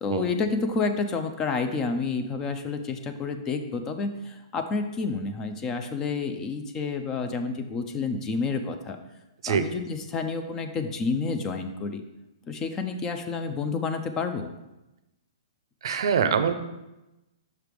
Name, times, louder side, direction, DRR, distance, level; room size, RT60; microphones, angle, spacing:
voice 1, 0.0-9.0 9.5-12.0 12.5-14.5, left 4 dB, 15° left, 7 dB, 0.3 m, -29 dB
voice 2, 15.8-16.5, right 7 dB, 60° right, 10 dB, 0.5 m, -24 dB
5.9 x 3.2 x 5.0 m, 0.99 s
hypercardioid pair, 160°, 3 cm